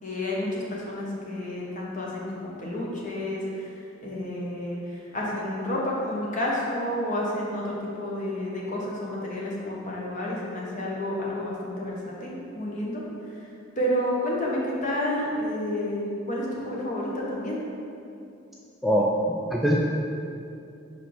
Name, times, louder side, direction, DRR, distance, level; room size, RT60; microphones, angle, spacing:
voice 1, 0.0-13.5 13.8-17.6, left 1 dB, 40° left, -4 dB, 1.3 m, -30 dB
voice 2, 18.8-19.8, equal, ahead, -3 dB, 0.4 m, -23 dB
5.0 x 4.8 x 6.0 m, 2.6 s
head